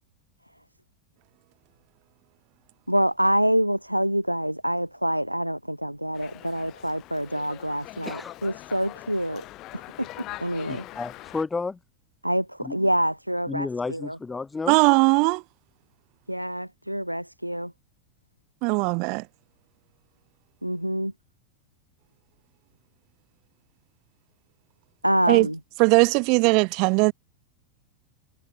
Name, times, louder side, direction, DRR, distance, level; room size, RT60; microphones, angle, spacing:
voice 1, 2.9-9.4 10.0-10.8 12.2-14.2 16.3-17.7 20.6-21.1 25.0-25.6, equal, 90° right, 1.4 m, -26 dB
Dog, 6.1-11.4, left 17 dB, 35° left, 2.7 m, -42 dB
voice 2, 8.1-8.4 10.7-11.8 12.6-12.8 13.5-14.8, left 4 dB, 10° left, 2.0 m, -32 dB
voice 3, 14.7-15.4 18.6-19.2 25.3-25.5 25.8-27.1, right 32 dB, 45° right, 0.9 m, -19 dB
figure-of-eight pair, 90°, 0 cm